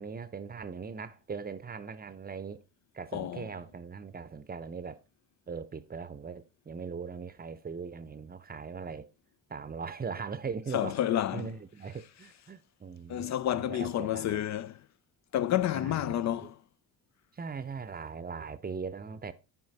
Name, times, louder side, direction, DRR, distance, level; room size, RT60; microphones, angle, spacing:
voice 1, 0.0-2.6 2.9-5.0 5.5-9.1 9.5-11.0 11.3-14.4 15.7-16.5 17.3-19.3, right 5 dB, 20° right, 0.7 m, -40 dB
voice 2, 3.1-3.5 10.7-11.5 13.1-14.8 15.3-16.6, left 11 dB, 40° left, 0.4 m, -30 dB
9.7 x 4.4 x 4.1 m
hypercardioid pair, 50°, 49 cm